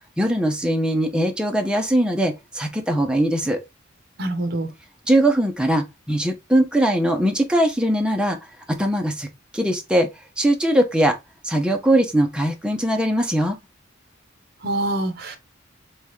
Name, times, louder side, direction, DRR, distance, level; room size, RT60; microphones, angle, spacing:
voice 1, 0.2-3.6 5.1-8.4 8.7-9.3 9.5-10.1 10.4-11.2 11.4-13.6, right 1 dB, 5° right, 0.6 m, -20 dB
voice 2, 4.2-4.7 14.6-15.4, right 1 dB, 50° right, 0.9 m, -25 dB
3.6 x 3.2 x 3.0 m
head